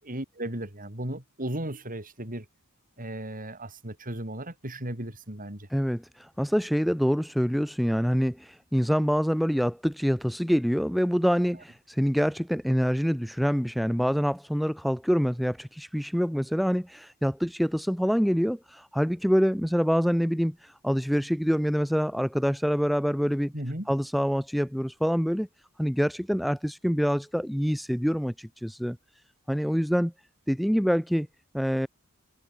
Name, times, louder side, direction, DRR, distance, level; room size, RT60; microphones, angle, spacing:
voice 1, 0.0-2.5 3.0-5.7 23.5-23.9, right 1 dB, 40° right, 6.5 m, -35 dB
voice 2, 5.7-23.5 23.9-25.5 25.8-29.0 29.5-30.1 30.5-31.3 31.5-31.9, equal, ahead, 1.9 m, -26 dB
head